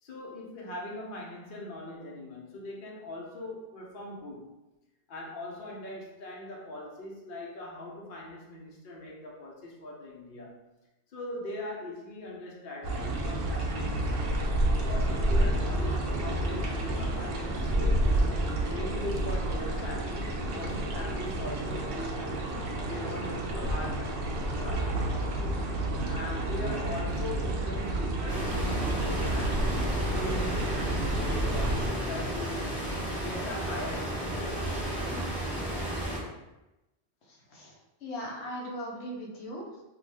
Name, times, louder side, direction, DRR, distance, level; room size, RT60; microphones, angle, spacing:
voice 1, 0.0-4.6 5.1-10.7 11.1-14.2 14.7-18.1 18.7-22.6 22.9-25.6 26.1-29.8 30.1-32.8 33.2-35.0, left 1 dB, 55° left, -3 dB, 0.8 m, -41 dB
sound 1, 12.8-31.9, right 1 dB, 65° right, 0.7 m, -30 dB
sound 2, 28.3-36.2, right 1 dB, 5° right, 1.2 m, -33 dB
voice 2, 38.0-39.8, equal, 90° left, -2 dB, 1.0 m, -38 dB
2.6 x 2.3 x 3.3 m, 0.98 s
omnidirectional pair, 1.1 m